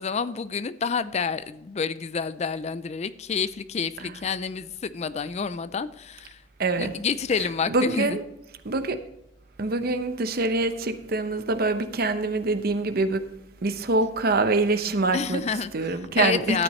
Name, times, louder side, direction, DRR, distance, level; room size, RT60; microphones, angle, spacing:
voice 1, 0.0-6.4 6.8-8.2 15.1-16.6, left 5 dB, 35° left, 0.4 m, -29 dB
voice 2, 6.6-6.9 7.7-8.2 8.6-9.0 9.6-13.2 13.6-15.4 15.7-16.6, right 3 dB, 55° right, 0.8 m, -25 dB
13.0 x 9.1 x 3.2 m
head